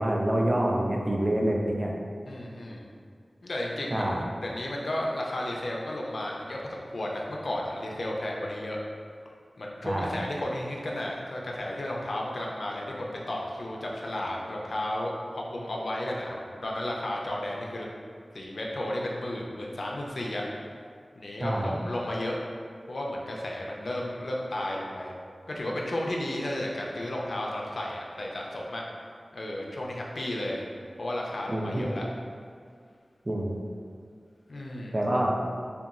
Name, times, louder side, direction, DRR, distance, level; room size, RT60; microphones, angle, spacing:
voice 1, 0.0-1.9 3.9-4.3 9.8-10.2 21.4-21.8 31.5-31.9 33.3-33.6 34.9-35.4, right 1 dB, 30° right, -1 dB, 0.3 m, -27 dB
voice 2, 2.2-2.9 3.4-8.8 9.6-17.9 18.3-20.4 21.2-22.4 22.9-25.1 25.5-28.8 29.3-30.6 31.0-32.0 34.5-35.0, left 1 dB, 75° left, -2 dB, 0.4 m, -33 dB
2.8 x 2.2 x 2.4 m, 2.1 s
wide cardioid pair, 60°, 0 cm